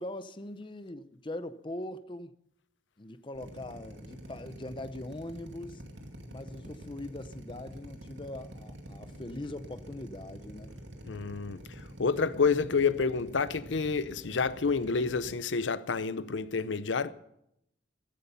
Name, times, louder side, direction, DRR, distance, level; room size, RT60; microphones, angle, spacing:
voice 1, 0.0-2.3 3.0-5.8 6.3-10.8, left 1 dB, 25° left, 0.7 m, -41 dB
Drill, 3.3-15.3, equal, 75° right, 2.3 m, -47 dB
voice 2, 11.1-11.6 12.0-17.1, left 5 dB, 80° left, 0.7 m, -29 dB
15.0 x 14.0 x 5.6 m
head